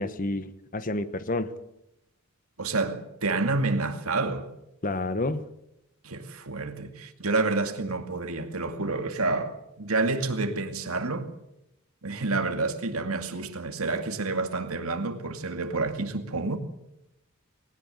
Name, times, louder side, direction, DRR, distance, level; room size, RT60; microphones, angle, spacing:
voice 1, 0.0-1.5 4.8-5.5, left 2 dB, 40° left, 1.1 m, -29 dB
voice 2, 2.6-4.5 6.0-11.3 12.0-16.6, right 3 dB, 80° right, 2.3 m, -29 dB
20.5 x 18.0 x 7.9 m
head